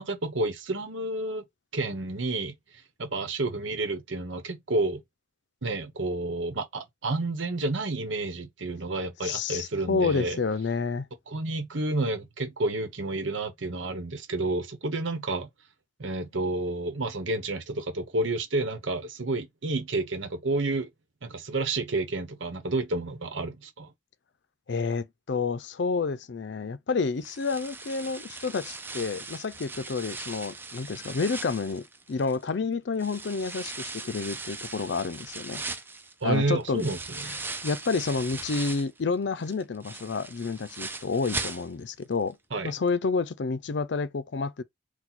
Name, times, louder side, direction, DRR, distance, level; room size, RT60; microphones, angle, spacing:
voice 1, 0.0-1.4 1.7-2.5 3.0-5.0 5.6-10.4 11.3-15.5 16.0-20.9 21.2-23.9 36.2-37.4 42.5-42.7, right 2 dB, 85° right, 1.0 m, -30 dB
voice 2, 9.2-11.0 24.7-35.6 36.2-36.9 37.6-42.4 42.6-44.6, left 4 dB, 70° left, 0.5 m, -29 dB
sound 1, 27.2-32.5 33.0-39.0 39.4-42.0 42.3-42.4 42.9-43.0, right 3 dB, 10° right, 0.4 m, -39 dB
4.0 x 2.3 x 4.4 m
head